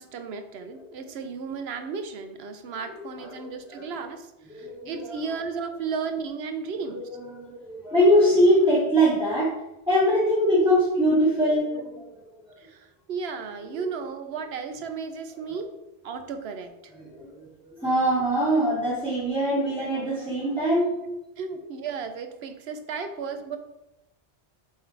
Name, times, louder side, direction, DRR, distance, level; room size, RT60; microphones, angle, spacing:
voice 1, 0.0-7.1 12.6-15.7 16.0-16.7 19.8-19.9 21.0-23.6, right 5 dB, 70° right, 8 dB, 0.9 m, -34 dB
voice 2, 3.2-4.0 4.5-5.3 6.9-9.5 9.9-11.9 13.7-13.8 15.4-15.5 17.0-20.9, equal, 5° right, -11 dB, 2.4 m, -23 dB
7.6 x 3.2 x 4.6 m, 0.92 s
omnidirectional pair, 1.2 m